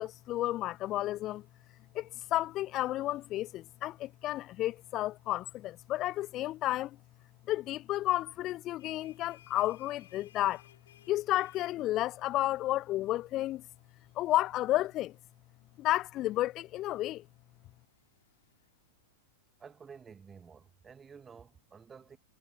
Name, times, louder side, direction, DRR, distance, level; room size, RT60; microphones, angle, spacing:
voice 1, 0.0-1.5 1.9-7.0 7.5-10.6 11.1-13.7 14.1-15.2 15.8-17.3, left 15 dB, 35° left, 0.7 m, -32 dB
sound 1, 8.6-19.9, left 11 dB, 60° left, 7.2 m, -65 dB
voice 2, 19.6-22.2, right 6 dB, 20° right, 2.1 m, -52 dB
figure-of-eight pair, 90°, 0 cm